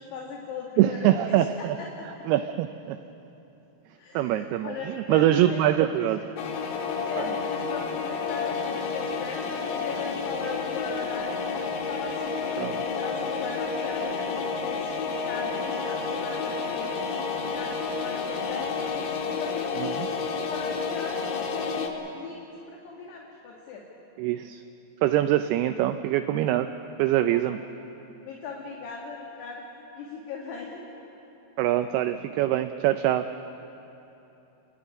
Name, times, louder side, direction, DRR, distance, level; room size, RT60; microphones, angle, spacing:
voice 1, 0.0-1.4 1.8-2.1 4.0-6.1 7.1-11.5 11.9-19.1 19.4-21.2 21.5-22.4 22.7-23.9 27.3-27.8 28.2-30.8, left 5 dB, 70° left, -1 dB, 3.9 m, -38 dB
voice 2, 0.8-1.8 2.3-3.0 4.1-4.7 5.1-6.2 7.2-7.3 12.6-12.8 19.8-20.1 24.2-24.6 25.0-26.7 27.0-27.6 31.6-33.3, right 13 dB, 80° right, 8 dB, 2.4 m, -24 dB
sound 1, 6.4-21.9, left 5 dB, 90° left, 4.0 m, -30 dB
28.0 x 12.5 x 9.9 m, 3.0 s
omnidirectional pair, 5.1 m